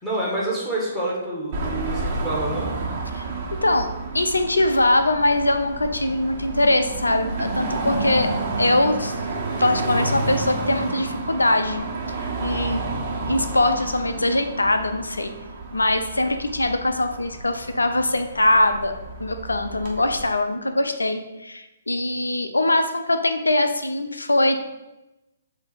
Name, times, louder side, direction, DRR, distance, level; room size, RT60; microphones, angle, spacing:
voice 1, 0.0-2.7, right 2 dB, 5° left, -8 dB, 1.9 m, -27 dB
Car passing by / Traffic noise roadway noise / Engine, 1.5-20.2, right 3 dB, 35° right, 1.3 m, -30 dB
voice 2, 3.5-3.9 4.1-8.3 8.6-9.1 9.6-11.8 12.4-12.8 13.3-15.3 15.7-18.9 19.2-24.6, left 2 dB, 75° left, 7 dB, 0.6 m, -22 dB
7.3 x 2.9 x 4.7 m, 0.99 s
figure-of-eight pair, 125°, 0 cm